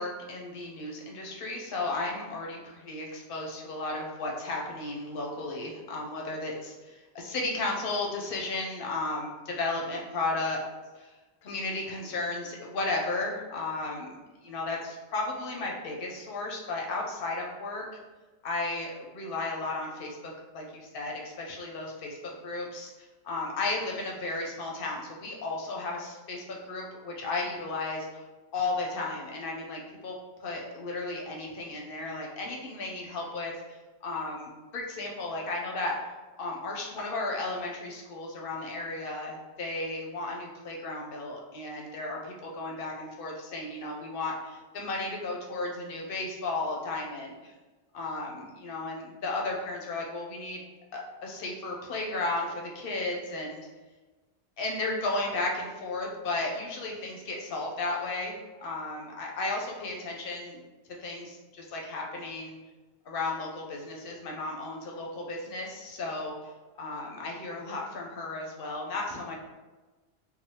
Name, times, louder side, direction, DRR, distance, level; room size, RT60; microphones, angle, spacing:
voice 1, 0.0-10.6 11.0-11.1 11.4-17.9 18.4-28.2 28.5-35.9 36.4-47.5 47.9-50.6 50.9-53.7 54.6-60.6 61.0-62.6 63.1-66.3 66.8-69.4, left 2 dB, 60° left, -1 dB, 0.7 m, -34 dB
3.2 x 2.1 x 2.7 m, 1.2 s
omnidirectional pair, 1.2 m